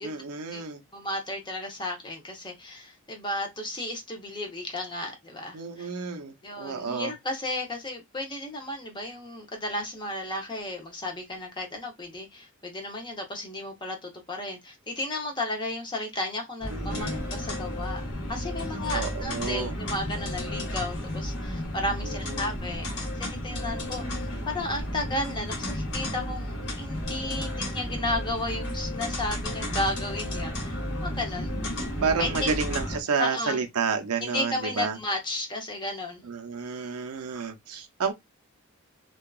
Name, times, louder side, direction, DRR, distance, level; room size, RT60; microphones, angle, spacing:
voice 1, 0.0-0.8 5.5-7.1 16.7-17.2 18.9-19.8 22.0-22.5 32.0-35.0 36.2-38.1, right 5 dB, 90° right, 0.6 m, -30 dB
voice 2, 0.9-5.9 6.4-18.0 18.3-31.5 32.2-32.5 33.2-33.6 34.2-36.3, left 1 dB, 20° left, 0.7 m, -33 dB
sound 1, 16.6-33.0, left 1 dB, 55° left, 0.9 m, -33 dB
2.7 x 2.3 x 2.3 m
head